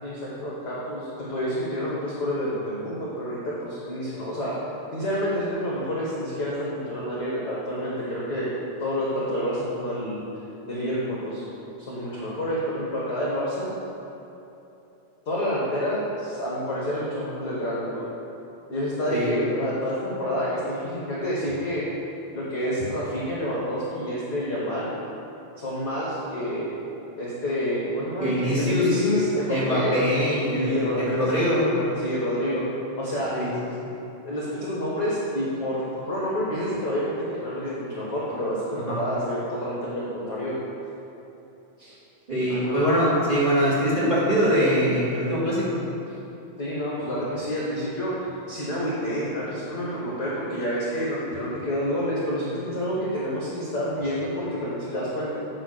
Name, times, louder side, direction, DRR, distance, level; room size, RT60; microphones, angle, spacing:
voice 1, 0.0-4.5 4.9-8.5 8.8-10.2 10.7-11.4 11.9-13.7 15.2-18.0 18.7-21.8 22.3-24.9 25.6-26.7 27.2-29.9 30.5-32.6 33.0-33.4 34.2-35.8 36.1-40.5 41.8-41.9 42.4-42.9 46.6-55.4, equal, 50° left, -7 dB, 1.2 m, -28 dB
voice 2, 28.2-28.9 29.5-31.7 33.3-33.5 33.8-33.9 38.9-39.0 42.3-45.8, equal, 25° right, -8 dB, 1.3 m, -23 dB
9.1 x 4.1 x 6.5 m, 3.0 s
omnidirectional pair, 3.6 m